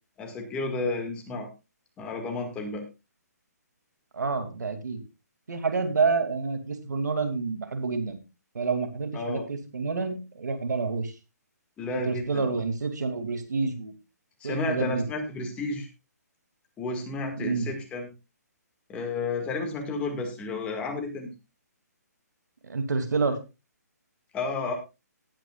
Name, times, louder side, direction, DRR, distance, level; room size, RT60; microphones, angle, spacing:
voice 1, 0.2-1.5 2.0-2.8 9.1-9.4 11.8-12.4 14.4-15.9 16.8-18.1 18.9-21.3 24.3-24.8, left 3 dB, 10° left, 3 dB, 2.0 m, -31 dB
voice 2, 4.1-5.0 5.5-8.2 8.5-11.1 11.9-13.9 14.4-15.0 17.4-17.7 22.6-23.4, right 4 dB, 80° right, 8 dB, 2.7 m, -28 dB
18.0 x 9.2 x 2.4 m, 0.26 s
hypercardioid pair, 160°, 9 cm